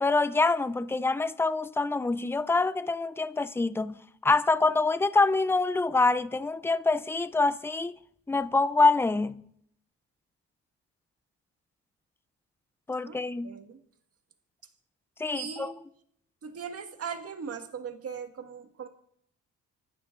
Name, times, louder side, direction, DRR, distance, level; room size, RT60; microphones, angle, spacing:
voice 1, 0.0-8.0 8.3-9.4 12.9-13.6 15.2-15.7, left 3 dB, 10° left, 0.5 m, -25 dB
voice 2, 13.0-13.8 15.3-15.8 16.4-18.9, right 6 dB, 50° right, 1.8 m, -39 dB
26.5 x 11.5 x 2.5 m
cardioid pair, 90°, 30 cm